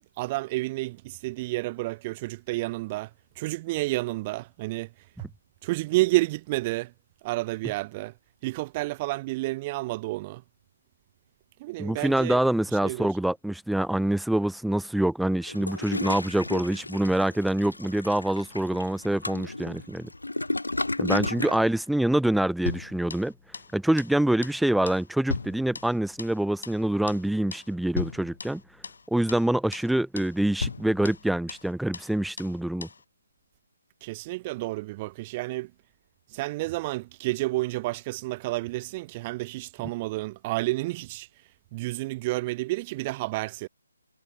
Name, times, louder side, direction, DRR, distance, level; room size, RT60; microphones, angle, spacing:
voice 1, 0.2-3.1 3.3-4.9 5.2-5.3 5.6-6.9 7.2-8.1 8.4-10.4 11.6-12.4 12.8-13.1 21.3-21.6 34.0-35.7 36.3-41.3 41.7-43.7, right 20 dB, 25° right, 1.5 m, -30 dB
voice 2, 11.8-20.1 21.0-23.3 23.7-28.6 29.1-32.9, right 1 dB, ahead, 0.7 m, -25 dB
Toilet flush, 15.4-21.6, left 2 dB, 85° left, 5.5 m, -33 dB
sound 1, 22.7-23.7 24.0-24.2 24.4-24.6 24.9-26.4 26.6-26.8 27.1-27.3 27.5-27.7 27.9-29.0 29.3-29.5 29.7-29.9 30.2-30.3 30.6-31.7 31.9-32.1 32.4-32.6 32.8-33.0, left 4 dB, 65° left, 2.5 m, -36 dB
figure-of-eight pair, 145°, 0 cm